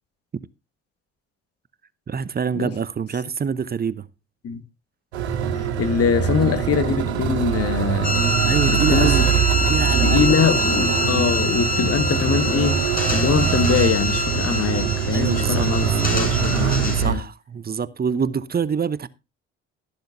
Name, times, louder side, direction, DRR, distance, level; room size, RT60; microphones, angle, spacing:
voice 1, 2.1-4.1 8.4-9.3 9.7-10.7 15.1-15.7 16.9-19.1, right 6 dB, 30° right, 0.8 m, -26 dB
sound 1, 5.1-17.1, right 8 dB, 85° right, 1.8 m, -23 dB
voice 2, 5.8-8.1 8.7-9.1 9.6-9.7 10.0-12.8 13.1-17.2, left 7 dB, 50° left, 1.6 m, -23 dB
sound 2, 8.0-17.0, left 1 dB, 25° left, 5.0 m, -25 dB
13.0 x 12.0 x 2.7 m
hypercardioid pair, 55°, 32 cm